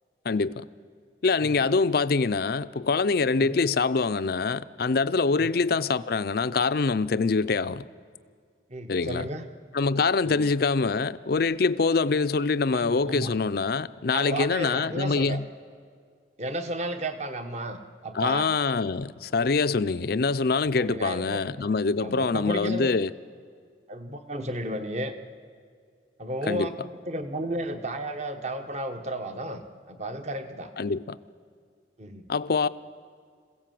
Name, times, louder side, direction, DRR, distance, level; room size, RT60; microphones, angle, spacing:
voice 1, 0.2-0.7 1.2-7.8 8.9-9.3 9.7-15.4 18.1-23.1 26.5-26.7 30.8-31.2 32.3-32.7, left 4 dB, 50° left, 0.5 m, -25 dB
voice 2, 8.7-9.4 10.2-10.4 12.7-13.3 14.1-15.4 16.4-18.5 20.8-21.4 22.0-22.9 23.9-25.2 26.2-29.6 29.9-30.7 32.0-32.3, right 1 dB, 35° right, 1.1 m, -33 dB
26.5 x 16.5 x 7.7 m
head